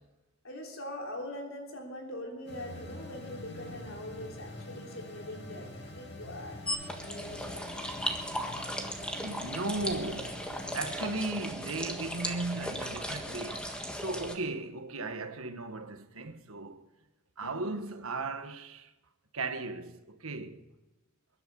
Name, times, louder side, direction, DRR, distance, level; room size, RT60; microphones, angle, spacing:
voice 1, 0.4-6.6 7.0-7.8 17.4-17.8, left 1 dB, 75° left, 3.4 m, -42 dB
sound 1, 2.5-11.1, left 2 dB, 50° left, 2.8 m, -46 dB
sound 2, 6.7-14.3, equal, 5° left, 1.5 m, -37 dB
voice 2, 8.9-16.9 17.4-18.9 19.3-20.6, right 2 dB, 80° right, 1.5 m, -37 dB
22.5 x 11.5 x 5.4 m
head